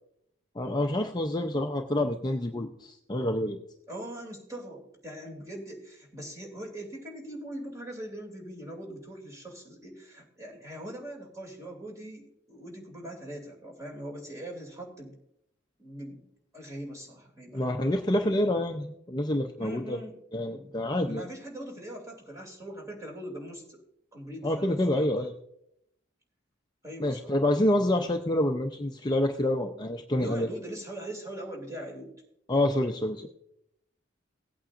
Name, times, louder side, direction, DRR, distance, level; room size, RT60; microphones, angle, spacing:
voice 1, 0.6-3.6 17.5-20.0 20.3-21.2 24.4-25.3 27.0-30.5 32.5-33.3, left 1 dB, 20° left, 4 dB, 0.5 m, -27 dB
voice 2, 3.9-15.1 15.8-16.2 16.5-17.7 19.6-20.2 20.5-20.7 21.0-23.8 24.1-25.1 26.8-27.4 30.1-32.1, right 1 dB, 15° right, -1 dB, 2.7 m, -41 dB
17.5 x 8.6 x 2.5 m, 0.76 s
head